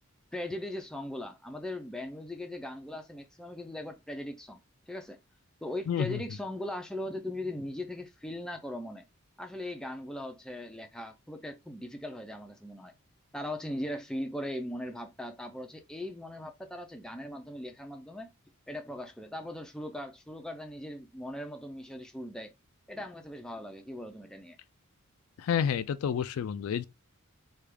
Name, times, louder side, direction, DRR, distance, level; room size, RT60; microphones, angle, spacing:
voice 1, 0.3-4.6 4.9-5.2 5.6-9.0 9.4-12.9 13.3-18.3 18.7-22.5 22.9-24.6, left 1 dB, 5° left, 0.4 m, -39 dB
voice 2, 5.9-6.2 25.4-26.9, left 8 dB, 70° left, 0.3 m, -29 dB
3.3 x 2.3 x 3.2 m
head